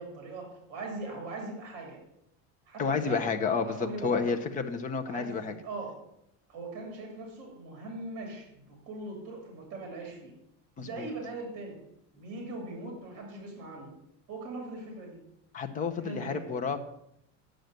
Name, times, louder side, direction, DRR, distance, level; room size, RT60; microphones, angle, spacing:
voice 1, 0.0-2.0 2.7-4.4 5.0-5.9 6.5-10.3 10.8-11.8 12.1-13.9 14.3-15.2 16.0-16.5, right 2 dB, 40° right, 2 dB, 2.9 m, -40 dB
voice 2, 2.8-5.5 10.8-11.1 15.5-16.8, left 5 dB, 20° left, 6 dB, 0.7 m, -30 dB
9.2 x 6.4 x 8.0 m, 0.79 s
cardioid pair, 175°, 36 cm